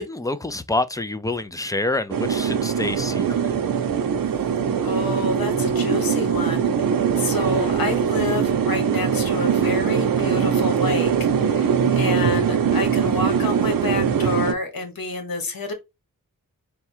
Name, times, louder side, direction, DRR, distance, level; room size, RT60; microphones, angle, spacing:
voice 1, 0.0-3.5, left 2 dB, 10° left, 0.3 m, -27 dB
sound 1, 2.1-14.5, right 7 dB, 75° right, 0.6 m, -21 dB
voice 2, 4.8-15.7, left 3 dB, 85° left, 1.2 m, -29 dB
3.4 x 2.3 x 4.3 m
wide cardioid pair, 95°, 34 cm